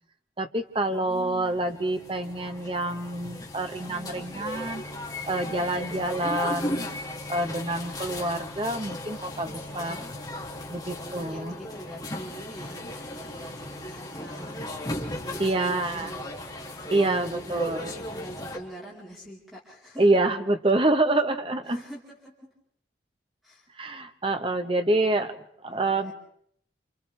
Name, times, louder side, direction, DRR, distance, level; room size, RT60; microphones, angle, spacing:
voice 1, 0.4-4.8 5.3-6.9 7.3-10.0 10.7-11.5 15.4-16.1 16.9-17.9 20.0-21.8 23.8-26.1, right 2 dB, 30° right, 6 dB, 1.3 m, -27 dB
voice 2, 0.9-1.6 9.7-10.2 10.9-20.1 21.6-22.5 23.4-23.7 25.7-26.1, right 1 dB, ahead, -6 dB, 4.2 m, -45 dB
sound 1, 1.0-18.6, left 1 dB, 20° left, 2.8 m, -36 dB
28.5 x 28.5 x 3.5 m, 0.67 s
head